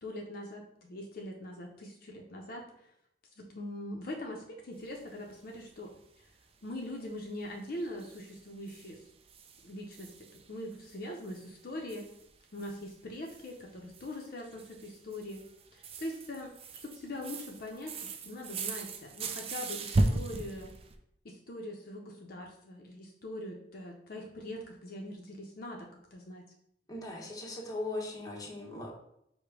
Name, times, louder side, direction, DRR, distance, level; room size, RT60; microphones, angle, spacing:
voice 1, 0.0-2.9 3.4-6.3 6.6-9.0 9.6-12.1 12.5-15.4 15.7-16.5 16.8-20.7 21.2-26.4, left 1 dB, 55° left, 0 dB, 0.6 m, -42 dB
sound 1, 4.9-5.2 5.5-5.6 5.9-6.0 6.3-6.4 6.7-6.9 7.2-7.3 7.8-13.0 13.2-21.0, right 2 dB, 35° right, 0.4 m, -37 dB
voice 2, 26.9-28.9, left 2 dB, 20° left, -1 dB, 0.9 m, -39 dB
4.9 x 2.1 x 4.6 m, 0.75 s
head